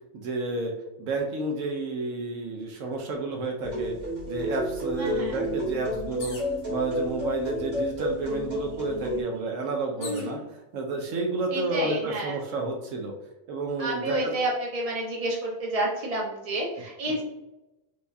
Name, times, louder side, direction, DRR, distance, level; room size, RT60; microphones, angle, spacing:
voice 1, 0.1-0.7 1.0-4.0 4.3-6.4 6.7-10.4 10.7-13.1 13.5-14.4, right 2 dB, 75° right, 2 dB, 1.0 m, -30 dB
sound 1, 3.6-9.2, equal, 50° right, 1.8 m, -31 dB
voice 2, 5.0-5.4 10.0-10.4 11.5-12.4 13.8-17.2, right 1 dB, 30° right, -3 dB, 0.9 m, -30 dB
sound 2, 6.2-6.6 7.5-7.6 8.0-10.3 11.1-11.6, left 3 dB, 65° left, 1.0 m, -44 dB
4.6 x 2.3 x 2.6 m, 0.99 s
omnidirectional pair, 1.4 m